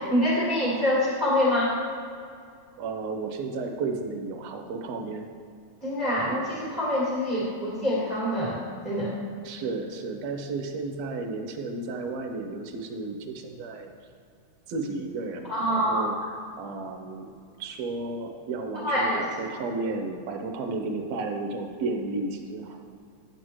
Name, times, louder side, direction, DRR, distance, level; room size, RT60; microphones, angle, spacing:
voice 1, 0.0-1.7 5.8-9.1 15.5-16.1 18.8-19.2, left 1 dB, 15° right, -7 dB, 1.6 m, -25 dB
voice 2, 2.8-5.3 9.4-13.9 14.7-17.3 17.6-22.8, right 3 dB, 70° right, 4 dB, 1.8 m, -33 dB
10.5 x 7.9 x 3.1 m, 2.3 s
omnidirectional pair, 3.4 m